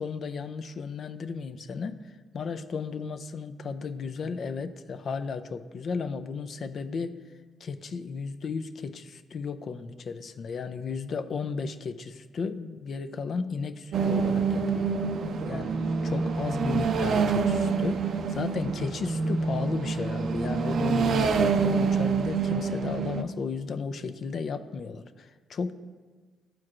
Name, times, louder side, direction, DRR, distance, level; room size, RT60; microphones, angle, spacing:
voice 1, 0.0-2.0 2.3-7.2 7.6-15.0 15.5-15.8 16.0-25.7, left 5 dB, 55° left, 10 dB, 0.4 m, -34 dB
sound 1, 13.9-23.2, right 5 dB, 65° right, 0.4 m, -27 dB
12.5 x 4.5 x 2.5 m, 1.4 s
cardioid pair, 90°, 0 cm